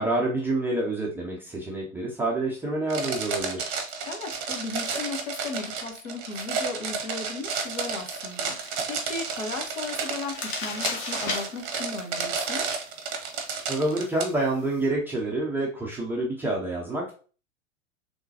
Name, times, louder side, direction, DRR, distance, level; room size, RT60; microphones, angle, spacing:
voice 1, 0.0-3.7 13.7-17.1, right 2 dB, 5° right, -4 dB, 0.4 m, -27 dB
sound 1, 2.9-14.2, right 5 dB, 35° right, 0.7 m, -31 dB
voice 2, 4.0-12.6, left 4 dB, 65° left, 4 dB, 1.1 m, -36 dB
sound 2, 7.4-14.9, left 3 dB, 30° left, 0.9 m, -39 dB
3.6 x 3.0 x 2.8 m, 0.38 s
figure-of-eight pair, 90°, 40 cm